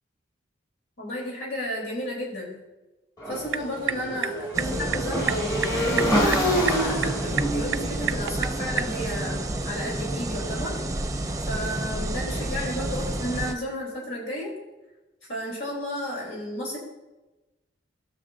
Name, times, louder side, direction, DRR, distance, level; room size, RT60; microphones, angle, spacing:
voice 1, 1.0-2.5 3.3-10.8 11.5-14.5 15.3-16.8, left 1 dB, 75° left, -3 dB, 3.7 m, -32 dB
Motorcycle / Engine, 3.2-9.3, equal, 20° left, 1.8 m, -28 dB
sound 1, 3.3-9.0, right 10 dB, 80° right, 0.3 m, -32 dB
sound 2, 4.5-13.5, right 1 dB, 20° right, 0.6 m, -30 dB
19.0 x 6.5 x 2.7 m, 1.1 s
head